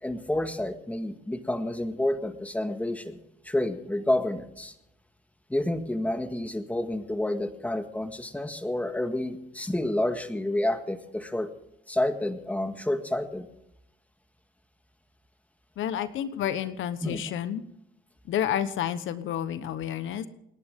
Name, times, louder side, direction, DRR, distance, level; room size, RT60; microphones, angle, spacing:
voice 1, 0.0-3.2 3.4-4.7 5.5-11.5 11.9-13.5 17.0-17.2, left 1 dB, 5° left, 7 dB, 1.7 m, -29 dB
voice 2, 15.8-17.6 18.2-20.3, left 10 dB, 80° left, 12 dB, 1.1 m, -30 dB
29.0 x 11.0 x 3.7 m, 0.82 s
cardioid pair, 90°, 20 cm